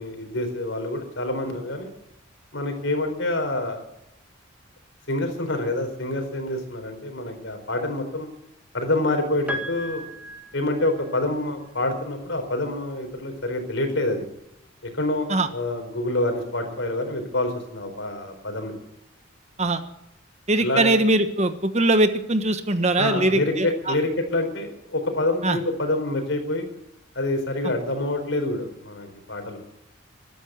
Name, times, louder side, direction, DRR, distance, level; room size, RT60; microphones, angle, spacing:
voice 1, 0.0-1.9 2.5-3.8 5.1-8.3 8.7-10.1 10.5-14.2 14.9-18.7 20.6-21.0 22.9-26.7 27.1-29.6, left 2 dB, 65° left, 6 dB, 4.4 m, -27 dB
Piano, 9.5-11.5 12.8-12.9, equal, 5° right, 2.0 m, -35 dB
voice 2, 20.5-23.9 25.4-25.6, right 2 dB, 35° right, 9 dB, 1.3 m, -21 dB
14.0 x 12.5 x 8.2 m, 0.84 s
head